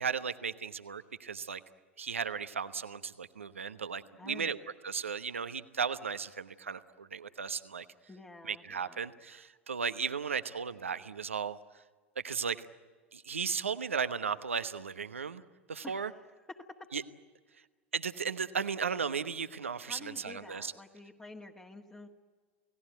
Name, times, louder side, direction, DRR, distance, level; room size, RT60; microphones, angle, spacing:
voice 1, 0.0-1.6 2.0-7.9 8.4-11.6 12.2-12.7 13.1-15.4 15.7-16.1 16.9-17.0 17.9-20.7, right 6 dB, 80° right, 13 dB, 1.0 m, -35 dB
voice 2, 4.2-4.6 8.1-9.0 15.8-16.2 16.5-16.8 19.9-22.1, left 2 dB, 15° left, 0 dB, 1.8 m, -49 dB
29.0 x 18.0 x 9.1 m, 1.5 s
figure-of-eight pair, 85°, 7 cm